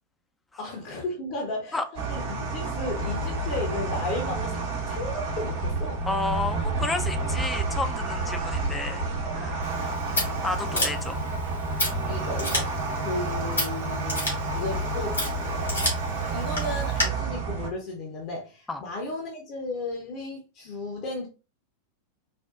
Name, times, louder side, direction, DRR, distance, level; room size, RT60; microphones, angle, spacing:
voice 1, 0.6-6.0 9.2-9.5 10.7-10.9 12.1-14.3 14.5-15.2 16.3-21.3, left 2 dB, 40° left, 0.8 m, -34 dB
sound 1, 2.0-17.7, right 3 dB, 50° right, 0.9 m, -29 dB
voice 2, 6.1-9.1 9.4-9.5 10.4-11.2 18.7-18.8, left 2 dB, 10° left, 0.4 m, -31 dB
Scissors, 9.6-17.0, left 1 dB, 80° left, 1.7 m, -32 dB
4.2 x 2.2 x 2.4 m
figure-of-eight pair, 90°, 0 cm